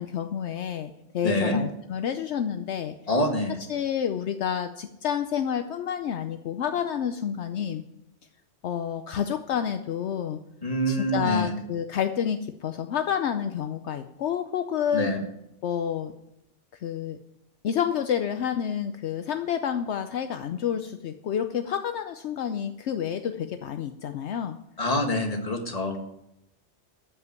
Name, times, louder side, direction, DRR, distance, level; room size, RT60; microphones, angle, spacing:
voice 1, 0.0-3.0 3.7-7.8 8.6-10.4 10.9-15.1 15.6-16.1 16.7-17.2 17.6-24.6, left 8 dB, 70° left, 8 dB, 0.9 m, -29 dB
voice 2, 1.2-1.6 3.1-3.6 10.6-11.5 14.9-15.2 24.8-26.0, left 1 dB, 30° left, 3 dB, 1.9 m, -25 dB
13.5 x 5.8 x 9.1 m, 0.83 s
omnidirectional pair, 1.2 m